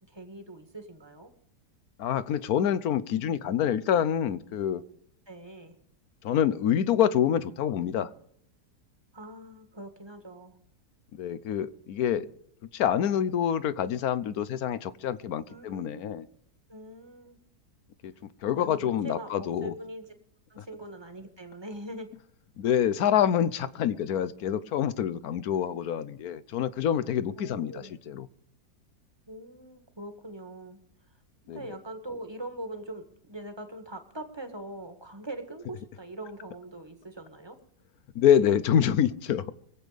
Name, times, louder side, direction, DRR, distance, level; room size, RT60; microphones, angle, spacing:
voice 1, 0.0-1.3 5.3-5.7 9.1-10.6 15.5-16.3 16.7-17.4 18.4-20.1 20.5-22.1 27.4-27.9 29.3-30.8 31.5-37.6, right 1 dB, 15° right, 6 dB, 1.6 m, -42 dB
voice 2, 2.0-4.8 6.2-8.1 11.1-12.3 12.7-16.3 18.0-18.1 18.4-19.7 20.6-20.7 22.6-28.3 31.5-31.6 38.1-39.5, left 9 dB, 70° left, 15 dB, 1.1 m, -26 dB
24.0 x 8.3 x 5.1 m, 0.69 s
omnidirectional pair, 1.8 m